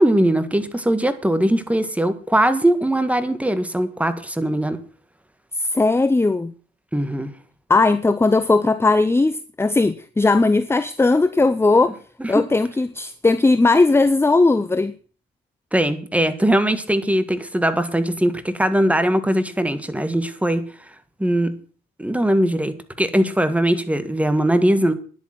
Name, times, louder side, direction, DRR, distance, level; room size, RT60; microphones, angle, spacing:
voice 1, 0.0-4.8 6.9-7.3 12.2-12.5 15.7-20.9 21.2-21.6 22.0-24.9, right 1 dB, 5° right, 1.7 m, -20 dB
voice 2, 5.6-6.5 7.7-12.0 12.3-14.9, left 3 dB, 10° left, 0.7 m, -18 dB
10.5 x 8.3 x 7.7 m
cardioid pair, 90°, 20 cm